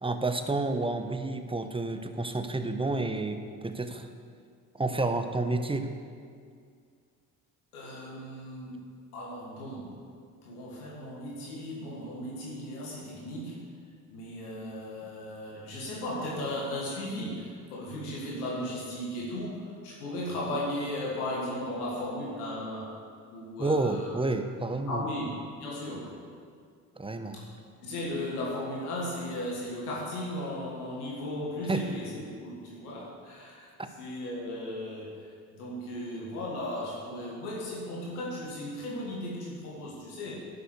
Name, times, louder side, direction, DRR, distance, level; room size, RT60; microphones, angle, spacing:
voice 1, 0.0-4.1 4.7-5.9 23.6-25.0 27.0-27.4 31.7-31.8 33.0-33.1 33.8-33.9, right 2 dB, 10° right, 7 dB, 1.1 m, -30 dB
voice 2, 7.7-8.8 9.1-10.0 10.4-13.7 14.1-23.0 23.3-24.3 24.9-26.2 27.3-27.4 27.8-35.3 35.6-40.4, left 1 dB, 85° left, -5 dB, 1.9 m, -36 dB
11.0 x 7.2 x 6.7 m, 2.2 s
hypercardioid pair, 50°, 44 cm